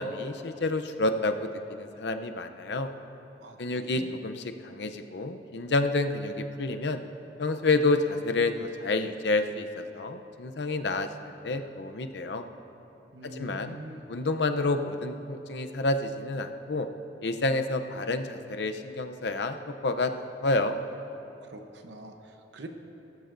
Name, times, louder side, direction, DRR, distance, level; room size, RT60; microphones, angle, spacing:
voice 1, 0.0-2.9 3.6-7.0 7.4-12.4 13.2-13.8 14.1-16.9 17.2-20.1 20.4-20.8, left 2 dB, 65° left, 7 dB, 0.6 m, -29 dB
voice 2, 3.4-4.1 13.1-14.1 21.5-22.7, right 1 dB, 80° right, 5 dB, 0.9 m, -44 dB
19.0 x 13.0 x 2.6 m, 3.0 s
head